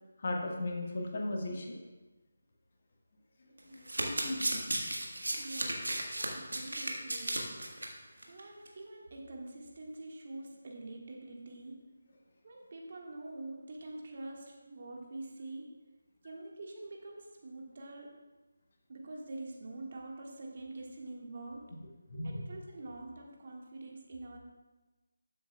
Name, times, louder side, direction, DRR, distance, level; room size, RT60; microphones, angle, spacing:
voice 1, 0.2-1.7 3.6-4.7 22.1-22.4, left 1 dB, 50° left, 0 dB, 1.5 m, -37 dB
Domestic sounds home sounds, 3.6-7.9 8.2-8.4 8.7-8.8, right 1 dB, 80° right, 1.5 m, -34 dB
voice 2, 5.4-5.8 6.1-7.5 8.3-11.8 12.4-15.7 16.2-18.1 18.9-21.6 22.2-24.4, right 2 dB, 50° right, 0 dB, 1.6 m, -45 dB
13.0 x 7.7 x 2.3 m, 1.2 s
figure-of-eight pair, 155°, 0 cm